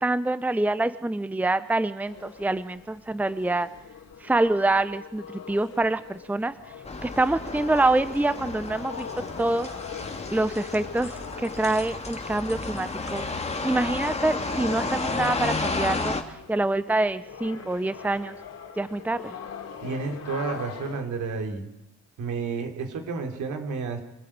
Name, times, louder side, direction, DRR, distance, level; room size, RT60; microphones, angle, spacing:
voice 1, 0.0-3.7 4.2-6.5 7.0-9.7 10.3-13.2 13.6-16.1 16.5-18.4 18.8-19.3, right 2 dB, 5° right, 13 dB, 0.8 m, -26 dB
sound 1, 2.1-21.0, left 7 dB, 55° left, 3.0 m, -42 dB
sound 2, 6.8-16.2, left 3 dB, 20° left, 2.5 m, -32 dB
voice 2, 19.8-21.7 22.2-24.0, right 4 dB, 70° right, 4 dB, 3.9 m, -31 dB
25.5 x 14.5 x 8.9 m, 0.87 s
cardioid pair, 90°, 30 cm